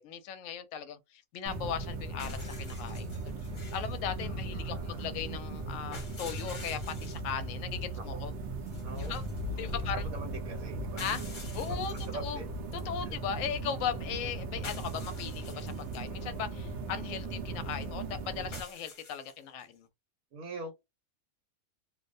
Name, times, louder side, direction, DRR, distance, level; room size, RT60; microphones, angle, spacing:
voice 1, 0.0-3.1 3.7-8.3 9.0-9.2 9.6-10.0 11.0-11.2 11.5-11.9 12.2-12.4 12.9-19.9, left 8 dB, 70° left, 0.9 m, -37 dB
sound 1, 1.5-18.6, right 2 dB, 60° right, 0.8 m, -38 dB
sound 2, 2.2-4.0 5.9-7.3 8.7-9.8 11.0-12.3 12.7-12.8 14.6-16.1 18.5-19.7, left 3 dB, 40° left, 0.9 m, -48 dB
voice 2, 4.2-5.1 8.0-8.2 8.8-9.2 9.5-11.0 11.7-12.7 13.0-13.2 20.3-20.7, right 3 dB, 80° right, 1.2 m, -44 dB
2.6 x 2.1 x 2.5 m
omnidirectional pair, 1.5 m